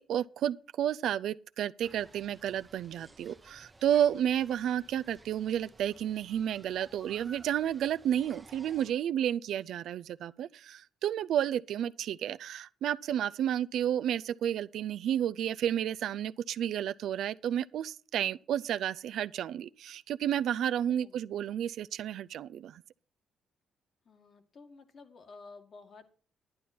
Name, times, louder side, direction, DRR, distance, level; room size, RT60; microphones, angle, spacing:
voice 1, 0.0-22.8, right 10 dB, 75° right, 0.4 m, -31 dB
sound 1, 1.8-8.9, right 2 dB, 15° right, 0.8 m, -56 dB
voice 2, 24.0-26.1, left 4 dB, 50° left, 1.8 m, -52 dB
11.0 x 10.0 x 4.3 m
cardioid pair, 90°, 0 cm